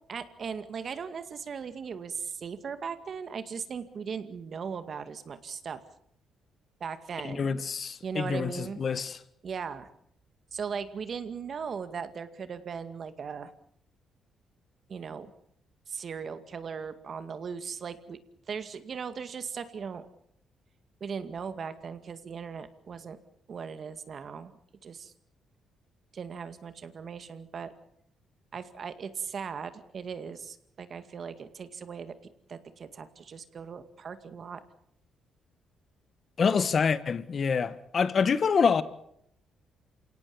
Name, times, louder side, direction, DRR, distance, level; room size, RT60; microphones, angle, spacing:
voice 1, 0.1-5.8 6.8-7.6 8.0-8.8 9.4-9.9 10.5-13.5 14.9-15.3 15.9-18.2 18.5-20.1 21.0-23.2 23.5-24.5 24.8-25.1 26.1-27.7 28.5-32.1 32.5-34.6, right 6 dB, 50° right, 2.1 m, -38 dB
voice 2, 7.2-9.2 36.4-38.8, left 6 dB, 45° left, 1.6 m, -26 dB
28.0 x 18.0 x 7.1 m
cardioid pair, 90°, 0 cm